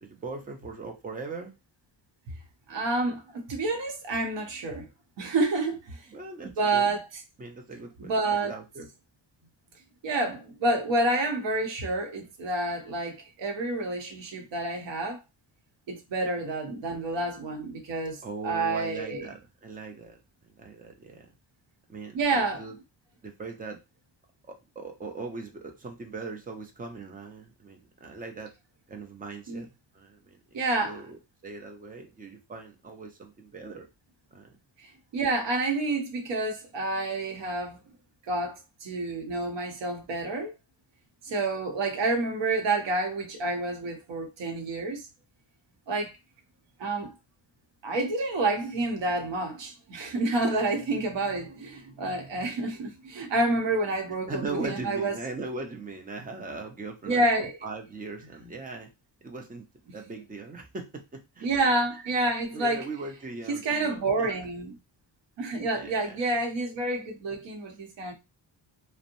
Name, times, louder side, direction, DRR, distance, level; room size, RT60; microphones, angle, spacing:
voice 1, 0.0-1.5 6.1-6.9 7.4-8.9 16.4-16.5 18.2-20.2 20.6-21.3 21.9-22.8 23.2-23.8 24.5-28.5 28.9-33.9 34.3-34.6 54.3-58.9 59.2-59.7 59.9-61.5 62.0-62.1 62.5-64.3 65.7-66.2, right 3 dB, 20° right, 0.6 m, -39 dB
voice 2, 2.7-4.9 5.2-6.0 6.4-7.1 8.0-8.6 10.0-15.2 15.9-19.3 22.1-22.6 29.5-29.6 30.5-31.0 34.8-37.8 38.3-40.5 41.2-45.1 45.9-46.1 46.8-47.1 47.8-55.2 57.1-57.5 58.4-58.5 61.4-62.8 63.5-64.8 65.4-68.1, right 2 dB, 70° right, 0.9 m, -29 dB
2.9 x 2.1 x 2.5 m
wide cardioid pair, 135°, 45 cm